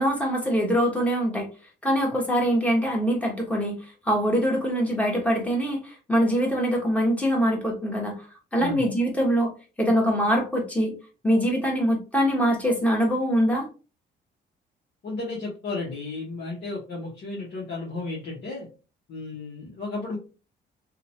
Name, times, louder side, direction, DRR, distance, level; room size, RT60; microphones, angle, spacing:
voice 1, 0.0-1.5 1.8-3.8 4.0-8.2 8.5-9.5 9.8-10.9 11.2-13.7, equal, 5° left, -1 dB, 1.2 m, -23 dB
voice 2, 15.0-18.7 19.1-20.2, left 3 dB, 60° left, -5 dB, 1.2 m, -33 dB
2.9 x 2.4 x 2.8 m, 0.33 s
cardioid pair, 90°, 20 cm